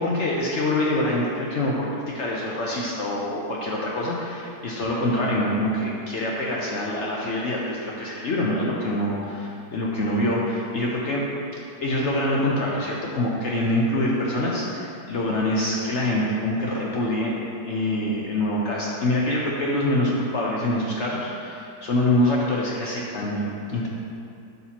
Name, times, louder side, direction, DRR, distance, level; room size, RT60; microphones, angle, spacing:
voice 1, 0.0-11.2 11.8-23.9, left 1 dB, 60° left, -4 dB, 0.8 m, -25 dB
11.0 x 4.1 x 2.9 m, 2.5 s
omnidirectional pair, 1.8 m